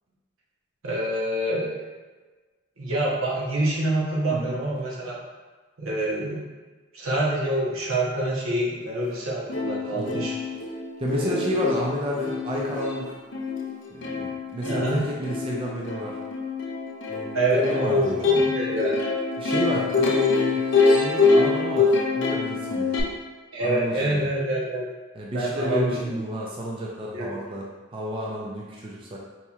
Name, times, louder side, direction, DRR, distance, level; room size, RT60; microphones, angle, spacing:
voice 1, 0.8-1.9 2.8-5.2 5.8-6.5 6.9-10.3 11.1-11.5 14.7-15.0 17.3-19.0 23.5-24.9 25.3-26.2 27.1-27.3, right 1 dB, 85° right, -4 dB, 0.8 m, -26 dB
voice 2, 4.3-4.6 10.0-10.3 11.0-13.2 13.9-16.2 17.1-18.4 19.4-22.9 23.6-24.3 25.1-29.2, equal, 25° right, -3 dB, 0.4 m, -31 dB
Plucked string instrument, 9.1-9.2 9.5-23.0, left 4 dB, 60° left, 0.5 m, -25 dB
4.2 x 2.8 x 2.3 m, 1.3 s
head